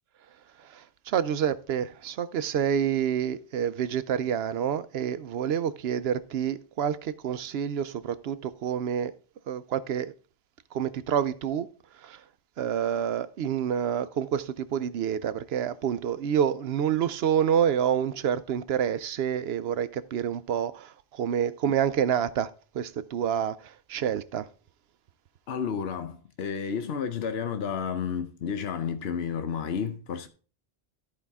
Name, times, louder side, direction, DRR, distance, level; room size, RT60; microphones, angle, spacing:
voice 1, 1.1-9.1 9.5-10.1 10.7-11.7 12.0-12.2 12.6-20.9 21.2-22.5 22.7-23.6 23.9-24.5, right 9 dB, 75° right, 0.8 m, -28 dB
voice 2, 25.5-30.3, left 7 dB, 75° left, 1.0 m, -31 dB
13.5 x 4.9 x 3.5 m
omnidirectional pair, 1.1 m